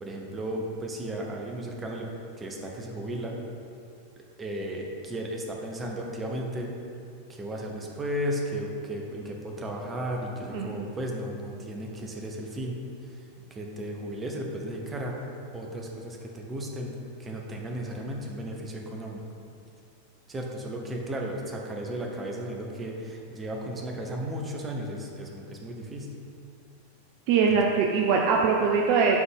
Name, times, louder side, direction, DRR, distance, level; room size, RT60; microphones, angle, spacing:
voice 1, 0.0-2.1 2.4-3.4 4.4-6.7 7.3-12.8 13.0-15.1 15.5-16.9 17.2-19.2 20.3-26.1, right 1 dB, 15° right, 0 dB, 0.9 m, -34 dB
voice 2, 27.3-29.2, right 5 dB, 45° right, 0 dB, 0.5 m, -22 dB
5.8 x 3.9 x 5.3 m, 2.5 s
figure-of-eight pair, 90°, 0 cm